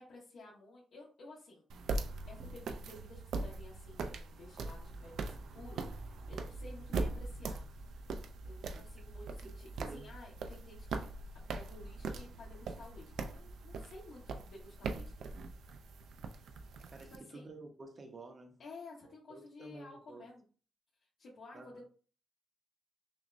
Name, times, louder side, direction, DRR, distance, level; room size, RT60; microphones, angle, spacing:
voice 1, 0.0-1.6 2.3-7.6 8.4-15.2 17.1-17.5 18.6-20.4 21.2-21.9, left 2 dB, 70° left, -6 dB, 1.2 m, -53 dB
sound 1, 1.7-17.2, right 3 dB, 85° right, 0.4 m, -41 dB
voice 2, 16.9-18.6 19.0-20.2 21.5-21.8, right 3 dB, 30° right, 3 dB, 0.7 m, -51 dB
6.0 x 2.2 x 2.5 m, 0.39 s
wide cardioid pair, 155°, 0 cm